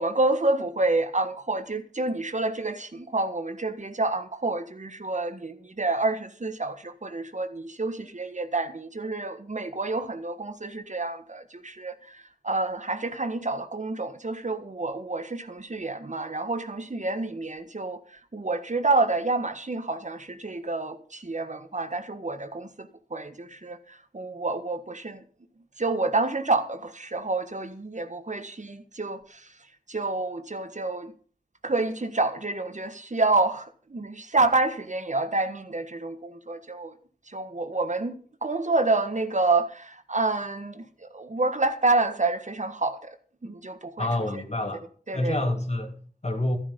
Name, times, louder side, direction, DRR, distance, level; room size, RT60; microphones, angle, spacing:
voice 1, 0.0-25.2 25.8-31.1 31.6-36.9 37.2-43.2 43.4-44.4 45.1-45.4, right 3 dB, 55° right, 1.5 m, -28 dB
voice 2, 44.0-44.8 45.1-46.6, left 1 dB, 45° left, 2.7 m, -28 dB
12.5 x 11.5 x 5.3 m
wide cardioid pair, 40°, 15 cm